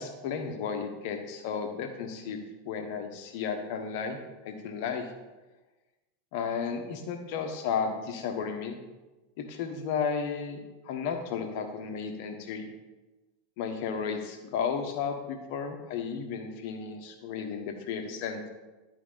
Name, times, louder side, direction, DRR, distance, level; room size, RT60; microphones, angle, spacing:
voice 1, 0.0-4.2 4.4-5.1 6.3-8.8 9.4-12.7 13.6-18.5, left 6 dB, 55° left, 5 dB, 1.1 m, -33 dB
11.0 x 4.7 x 3.9 m, 1.1 s
figure-of-eight pair, 85°, 0 cm